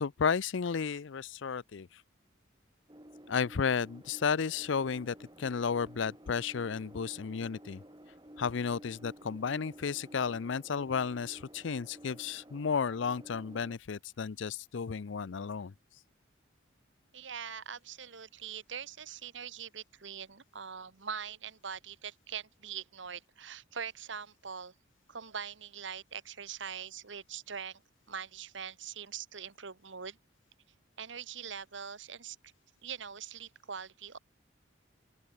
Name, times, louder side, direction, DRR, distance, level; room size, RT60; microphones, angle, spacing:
voice 1, 0.0-1.9 3.3-7.8 8.4-15.7, left 6 dB, 70° left, 0.5 m, -33 dB
sound 1, 2.9-13.8, equal, 20° right, 2.4 m, -53 dB
voice 2, 17.1-24.7 25.1-27.8 28.1-30.2 31.0-32.4 32.8-34.2, right 7 dB, 70° right, 1.2 m, -42 dB
open air
head